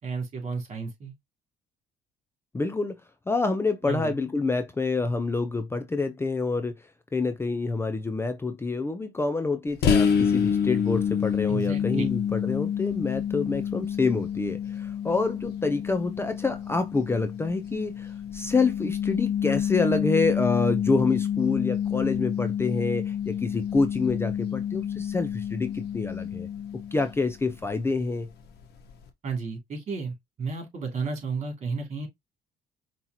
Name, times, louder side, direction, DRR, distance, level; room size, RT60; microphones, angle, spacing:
voice 1, 0.0-1.1 3.8-4.2 11.5-12.0 29.2-32.1, right 4 dB, 40° right, 2.8 m, -32 dB
voice 2, 2.5-3.0 3.3-6.7 7.1-26.5 26.9-28.3, left 3 dB, 15° left, 0.5 m, -27 dB
sound 1, 9.8-27.3, left 8 dB, 75° left, 1.2 m, -28 dB
5.5 x 2.9 x 2.9 m
cardioid pair, 110°, 17 cm